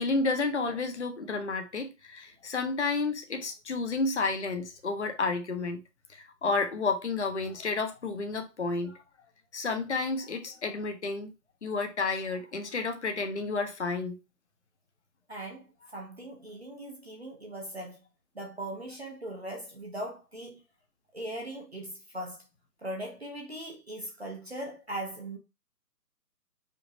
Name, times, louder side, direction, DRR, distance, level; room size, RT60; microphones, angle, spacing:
voice 1, 0.0-5.8 6.1-9.0 9.5-11.3 11.6-14.2, left 3 dB, 45° left, 0.6 m, -31 dB
voice 2, 15.3-15.7 15.9-18.0 18.3-20.6 21.1-22.4 22.8-25.4, right 1 dB, 40° right, 0.7 m, -39 dB
5.1 x 2.0 x 2.6 m
hypercardioid pair, 170°, 50 cm